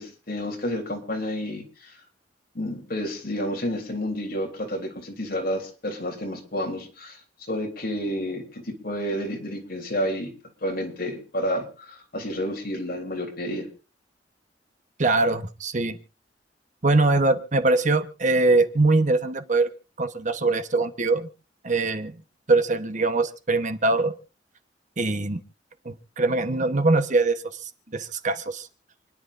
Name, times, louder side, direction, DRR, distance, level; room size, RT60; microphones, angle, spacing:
voice 1, 0.0-1.9 2.5-7.2 7.5-10.3 10.6-13.7, equal, 55° left, 2 dB, 3.3 m, -30 dB
voice 2, 15.0-16.0 16.8-19.7 20.0-21.3 21.6-22.1 22.5-24.1 25.0-25.4 25.8-28.7, right 3 dB, 45° right, 9 dB, 1.1 m, -22 dB
28.5 x 10.5 x 2.6 m, 0.32 s
head